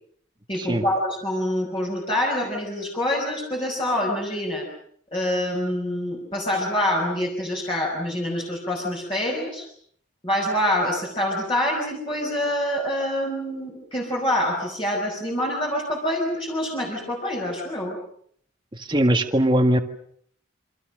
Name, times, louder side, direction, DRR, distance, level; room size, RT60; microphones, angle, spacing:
voice 1, 0.5-4.7 5.1-9.7 10.2-18.0, left 1 dB, 25° left, -2 dB, 5.5 m, -26 dB
voice 2, 18.7-19.8, right 1 dB, 25° right, 5 dB, 1.9 m, -20 dB
28.5 x 25.5 x 6.5 m, 0.64 s
head